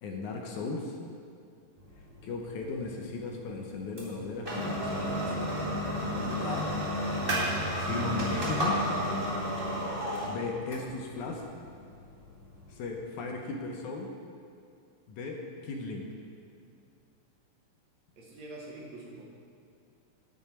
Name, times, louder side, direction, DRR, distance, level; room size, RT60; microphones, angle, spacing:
voice 1, 0.0-1.0 2.2-5.6 6.4-6.7 7.7-8.8 10.3-11.4 12.7-14.1 15.1-16.1, left 3 dB, 75° left, 1 dB, 2.0 m, -36 dB
sound 1, 1.8-13.0, equal, 25° right, 1.3 m, -32 dB
voice 2, 18.2-19.2, right 2 dB, 55° right, -3 dB, 2.4 m, -45 dB
10.5 x 8.8 x 4.4 m, 2.5 s
omnidirectional pair, 4.1 m